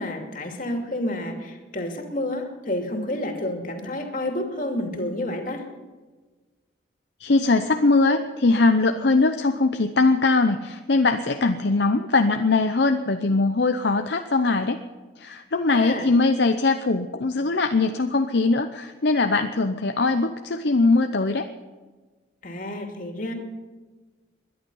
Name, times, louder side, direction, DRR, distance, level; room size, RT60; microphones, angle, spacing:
voice 1, 0.0-5.6 15.7-16.1 22.4-23.3, left 1 dB, 45° left, 3 dB, 2.7 m, -29 dB
voice 2, 7.2-14.8 15.2-21.5, left 3 dB, 65° left, 6 dB, 0.8 m, -21 dB
21.5 x 11.0 x 5.6 m, 1.3 s
head